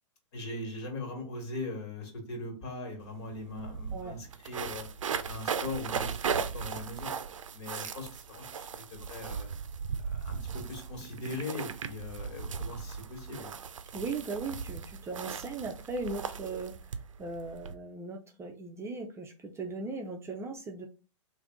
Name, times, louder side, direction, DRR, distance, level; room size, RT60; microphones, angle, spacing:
voice 1, 0.3-4.8 5.2-7.1 7.5-9.5 10.2-13.5, left 2 dB, 60° left, 3 dB, 1.7 m, -40 dB
sound 1, 3.0-3.1 3.3-17.7, right 6 dB, 80° right, 0.5 m, -37 dB
voice 2, 13.9-16.7 17.2-20.9, right 3 dB, 15° right, 2 dB, 0.5 m, -38 dB
3.4 x 2.6 x 3.6 m, 0.33 s
hypercardioid pair, 110°, 16 cm